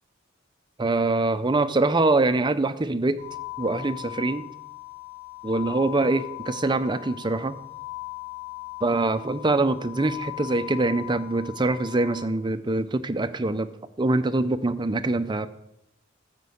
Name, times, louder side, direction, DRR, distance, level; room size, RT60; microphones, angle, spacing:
voice 1, 0.8-3.2 3.6-4.5 5.4-7.6 8.8-13.7 14.0-15.5, right 2 dB, 25° right, 11 dB, 0.6 m, -24 dB
sound 1, 3.2-12.2, left 21 dB, 35° left, 3.8 m, -39 dB
14.0 x 5.3 x 7.9 m, 0.83 s
head